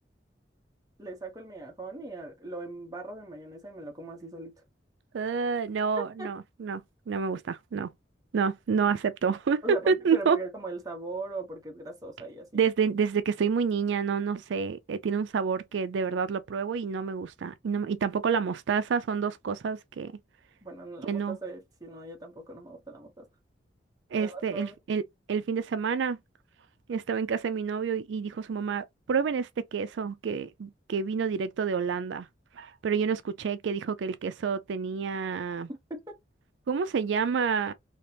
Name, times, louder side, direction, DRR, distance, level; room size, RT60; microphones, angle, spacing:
voice 1, 1.0-4.6 6.2-6.3 9.6-12.5 20.6-23.3 24.2-24.7 35.7-36.2, right 2 dB, 20° right, 1.0 m, -39 dB
voice 2, 5.1-7.9 8.3-10.4 12.5-20.1 21.0-21.4 24.1-25.0 25.3-26.2 26.9-32.3 32.6-35.7 36.7-37.7, right 6 dB, 90° right, 0.4 m, -28 dB
2.9 x 2.8 x 3.3 m
head